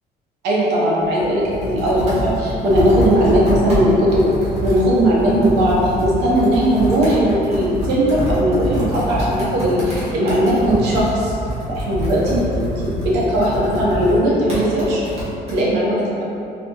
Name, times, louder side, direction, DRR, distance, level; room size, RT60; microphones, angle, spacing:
voice 1, 0.4-4.3 4.6-11.3 11.8-15.0 15.5-16.2, equal, 85° right, -5 dB, 1.0 m, -18 dB
Computer keyboard, 1.0-15.6, equal, 40° right, 1.4 m, -26 dB
4.0 x 2.9 x 2.7 m, 2.8 s
cardioid pair, 110°, 17 cm